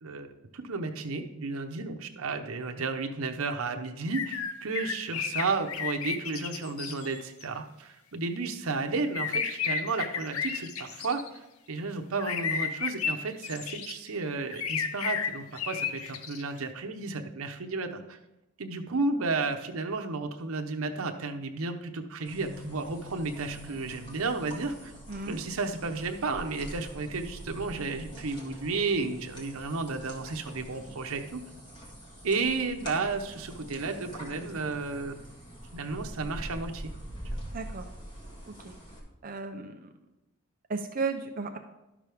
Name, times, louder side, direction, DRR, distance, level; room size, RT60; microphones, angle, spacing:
voice 1, 0.0-11.2 11.7-18.2 18.6-24.9 25.3-31.4 32.2-35.1 35.7-36.9, right 3 dB, 85° right, 5 dB, 0.9 m, -33 dB
sound 1, 4.1-7.5 9.1-11.4 12.2-13.9 14.5-16.4, left 6 dB, 90° left, 0.7 m, -32 dB
sound 2, 22.2-39.0, equal, 25° left, 1.8 m, -44 dB
voice 2, 25.1-25.4 37.5-37.9 38.5-38.7 39.2-39.9 40.7-41.6, right 4 dB, 40° right, 4 dB, 0.6 m, -34 dB
11.5 x 6.1 x 3.5 m, 0.94 s
head